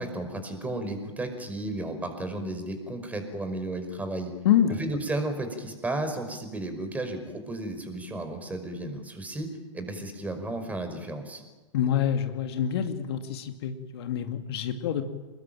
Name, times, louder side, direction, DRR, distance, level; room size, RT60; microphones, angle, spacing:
voice 1, 0.0-4.3 4.8-11.4, right 2 dB, 10° right, 7 dB, 5.4 m, -33 dB
voice 2, 4.4-4.8 11.7-15.0, left 9 dB, 50° left, 7 dB, 2.3 m, -26 dB
28.0 x 21.5 x 9.1 m, 1.2 s
figure-of-eight pair, 110°, 16 cm